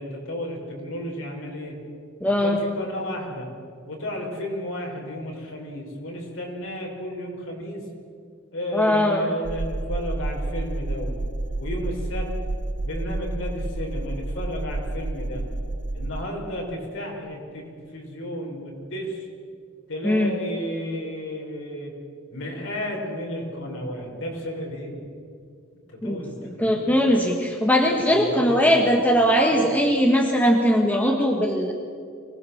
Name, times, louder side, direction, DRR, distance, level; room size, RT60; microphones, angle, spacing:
voice 1, 0.0-1.8 2.4-3.5 3.9-7.8 8.5-11.2 11.6-12.3 12.8-15.4 15.9-19.3 19.9-21.9 22.3-25.0 25.9-27.0 28.1-28.9 29.6-29.7, equal, 65° left, 0 dB, 5.5 m, -33 dB
voice 2, 2.2-2.6 8.7-9.2 20.0-20.3 26.0-31.7, equal, 10° left, 1 dB, 1.6 m, -20 dB
sound 1, 9.4-16.2, right 2 dB, 60° right, 0.8 m, -30 dB
24.5 x 19.0 x 7.4 m, 2.3 s
head